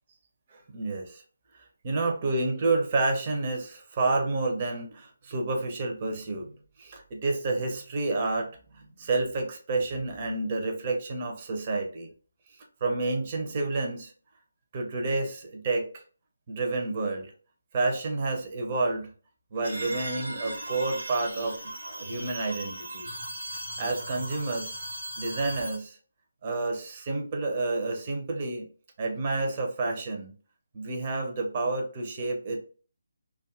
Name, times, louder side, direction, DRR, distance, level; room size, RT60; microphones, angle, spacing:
voice 1, 0.5-1.2 1.8-6.5 6.8-12.1 12.8-14.1 14.7-16.0 16.5-17.3 17.7-19.1 19.5-23.1 23.8-24.8 25.2-26.0 26.4-28.6 29.0-30.3 30.7-32.6, right 3 dB, 35° right, 2 dB, 0.6 m, -29 dB
sound 1, 19.6-25.8, right 1 dB, 80° right, 1.0 m, -38 dB
2.5 x 2.3 x 2.4 m, 0.38 s
figure-of-eight pair, 150°, 0 cm